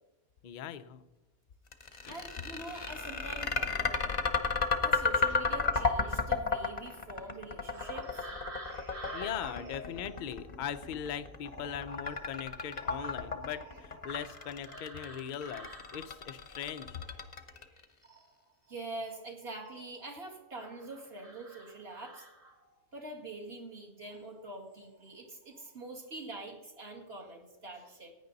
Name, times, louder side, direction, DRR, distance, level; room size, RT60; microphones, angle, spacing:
voice 1, 0.4-1.0 2.0-2.2 5.3-5.4 9.1-17.0, left 9 dB, 55° left, 10 dB, 0.5 m, -40 dB
sound 1, 1.7-17.8, left 4 dB, 35° left, 0.9 m, -32 dB
voice 2, 2.1-4.2 4.8-8.2 18.7-22.3 22.9-28.1, right 2 dB, 40° right, 0 dB, 2.2 m, -45 dB
sound 2, 7.7-17.7 18.0-20.0 20.5-22.8 24.0-24.2 24.7-25.2 25.4-25.7, right 1 dB, 60° right, 3.2 m, -50 dB
16.0 x 9.4 x 4.0 m, 1.1 s
omnidirectional pair, 1.6 m